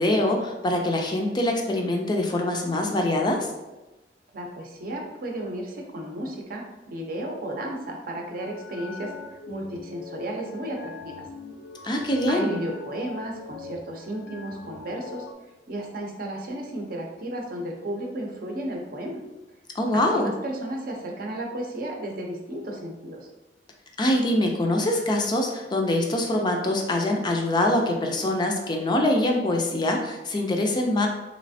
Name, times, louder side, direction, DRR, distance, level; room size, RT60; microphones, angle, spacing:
voice 1, 0.0-3.5 11.8-12.6 19.8-20.3 24.0-31.1, left 1 dB, 25° left, 2 dB, 0.4 m, -24 dB
voice 2, 4.3-11.3 12.3-15.3 15.7-19.2 19.9-23.3, right 1 dB, 55° right, 0 dB, 0.6 m, -34 dB
sound 1, 7.9-15.3, left 5 dB, 85° left, 0.5 m, -42 dB
3.2 x 3.1 x 2.6 m, 1.1 s
head